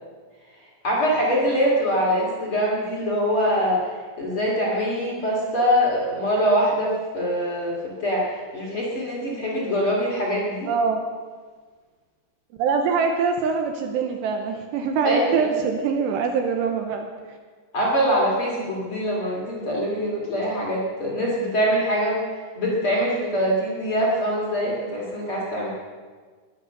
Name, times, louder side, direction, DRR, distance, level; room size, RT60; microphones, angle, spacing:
voice 1, 0.8-3.8 4.2-10.7 15.0-15.6 17.7-22.2 22.5-25.7, equal, 35° left, -4 dB, 2.5 m, -23 dB
voice 2, 10.7-11.0 12.6-17.1, right 5 dB, 75° right, 4 dB, 2.8 m, -23 dB
21.0 x 8.3 x 6.7 m, 1.5 s
omnidirectional pair, 5.6 m